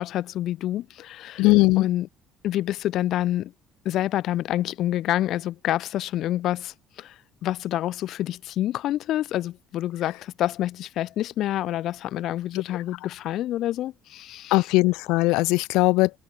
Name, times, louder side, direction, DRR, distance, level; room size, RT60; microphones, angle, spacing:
voice 1, 0.0-1.5 1.8-2.1 2.4-3.5 3.8-14.7, left 13 dB, 65° left, 3.8 m, -28 dB
voice 2, 1.4-1.9 14.5-16.1, left 22 dB, 85° left, 0.5 m, -19 dB
cardioid pair, 120°, 0 cm